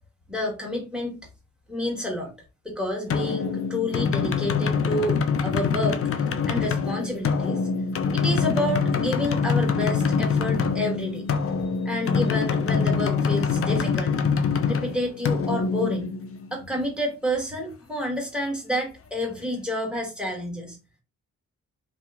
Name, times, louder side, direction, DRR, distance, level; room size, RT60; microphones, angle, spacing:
voice 1, 0.3-1.2 1.7-2.3 2.6-7.6 8.1-14.2 14.6-16.1 16.5-20.8, left 1 dB, 5° right, 1 dB, 1.3 m, -29 dB
sound 1, 3.1-16.6, left 5 dB, 45° left, 0.5 m, -25 dB
2.7 x 2.4 x 2.4 m, 0.30 s
cardioid pair, 55°, 33 cm